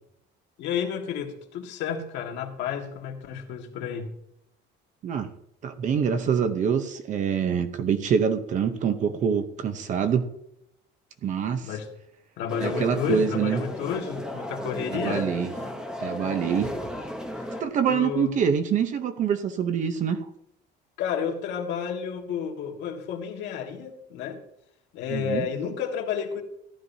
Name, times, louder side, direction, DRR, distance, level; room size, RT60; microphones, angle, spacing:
voice 1, 0.6-4.1 11.6-11.9 12.4-15.3 17.9-18.3 21.0-24.4 24.9-26.4, left 7 dB, 65° left, 2 dB, 1.7 m, -31 dB
voice 2, 5.6-10.3 11.2-11.7 12.6-13.6 14.9-15.7 16.0-16.7 17.6-20.3 25.1-25.5, right 7 dB, 40° right, 9 dB, 0.7 m, -25 dB
sound 1, 12.5-17.6, left 1 dB, 5° right, 0.8 m, -34 dB
15.0 x 11.5 x 2.7 m, 0.77 s
cardioid pair, 175°, 20 cm